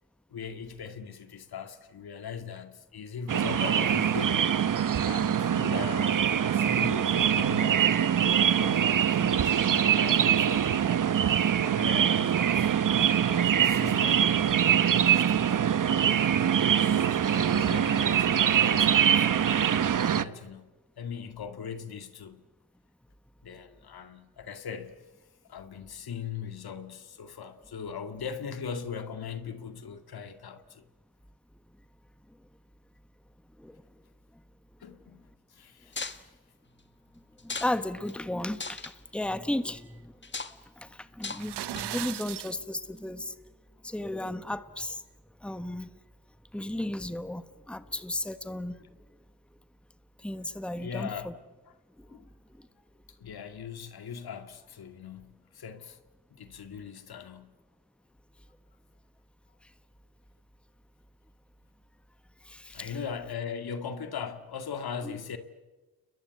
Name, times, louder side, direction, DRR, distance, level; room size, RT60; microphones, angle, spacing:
voice 1, 0.3-4.5 5.0-8.0 8.3-11.0 11.6-12.7 13.3-15.6 16.4-20.7 21.0-22.4 23.4-25.0 25.5-30.9 34.8-36.3 50.8-51.4 51.7-51.8 52.1-52.3 53.1-56.0 56.3-57.5 62.7-65.4, left 6 dB, 70° left, 2.1 m, -40 dB
sound 1, 3.3-20.2, right 9 dB, 55° right, 1.0 m, -24 dB
sound 2, 35.9-36.2 37.4-37.8 38.1-38.2 38.5-38.9 40.2-40.5 41.2-41.4 41.8-42.1, left 4 dB, 30° left, 1.7 m, -37 dB
voice 2, 37.4-40.1 40.8-43.3 43.8-45.0 45.4-45.9 46.5-48.8 50.2-51.3 52.0-52.1 62.4-62.9 65.0-65.2, left 1 dB, 5° left, 1.3 m, -34 dB
sound 3, 41.3-42.5, right 13 dB, 90° right, 0.8 m, -37 dB
29.5 x 21.5 x 8.2 m
cardioid pair, 75°, 39 cm